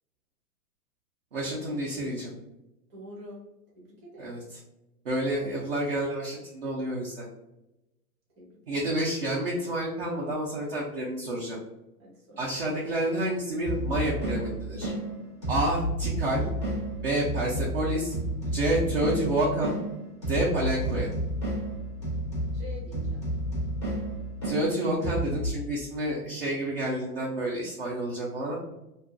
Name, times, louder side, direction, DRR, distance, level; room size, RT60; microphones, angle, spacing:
voice 1, 1.3-2.3 4.2-4.4 5.0-7.3 8.7-11.6 12.4-14.9 15.5-16.5 17.0-18.1 18.5-19.8 20.3-21.1 24.4-28.5, right 1 dB, 40° right, -4 dB, 0.4 m, -29 dB
voice 2, 2.9-3.4 3.7-4.3 8.4-8.8 12.0-12.4 22.5-23.3, equal, 15° right, -5 dB, 0.7 m, -46 dB
sound 1, 13.6-25.5, right 1 dB, 20° left, 0.4 m, -31 dB
2.6 x 2.3 x 2.4 m, 0.94 s
hypercardioid pair, 165°, 48 cm